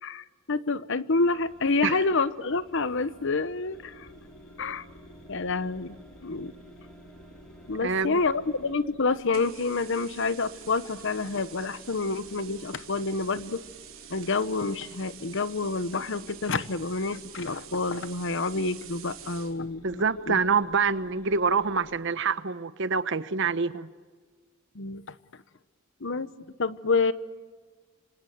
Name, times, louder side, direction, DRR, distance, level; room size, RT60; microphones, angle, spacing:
voice 1, 0.0-4.1 4.6-4.8 5.3-6.0 6.2-6.5 7.7-13.6 14.1-20.4 24.7-25.1 26.0-26.3 26.6-27.1, left 3 dB, 65° left, 1.0 m, -28 dB
sound 1, 1.1-8.7, right 1 dB, 5° left, 4.8 m, -54 dB
sound 2, 3.7-22.0, left 1 dB, 90° left, 3.3 m, -53 dB
voice 2, 7.8-8.2 19.8-23.9, right 5 dB, 60° right, 1.1 m, -26 dB
sound 3, 9.3-19.6, right 11 dB, 85° right, 3.5 m, -47 dB
26.5 x 26.0 x 7.9 m
head